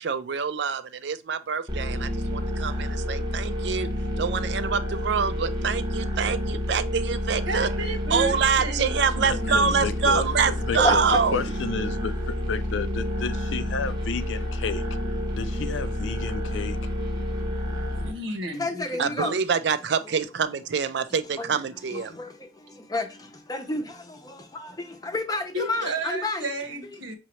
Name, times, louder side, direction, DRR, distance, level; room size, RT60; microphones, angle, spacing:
voice 1, 0.0-3.9 4.2-7.7 8.1-11.4 19.0-22.1, right 6 dB, 60° right, 0.4 m, -26 dB
sound 1, 1.7-18.1, equal, 25° right, 0.8 m, -29 dB
voice 2, 7.4-9.9 18.0-19.3 25.5-27.2, right 1 dB, 90° right, 1.1 m, -33 dB
voice 3, 9.2-11.0 11.3-14.9 15.4-16.8, left 5 dB, 80° left, 0.5 m, -32 dB
voice 4, 10.8-11.4 18.6-19.4 21.4-21.5 21.9-26.5 26.9-27.0, left 1 dB, 20° left, 0.6 m, -30 dB
5.9 x 2.8 x 3.1 m
head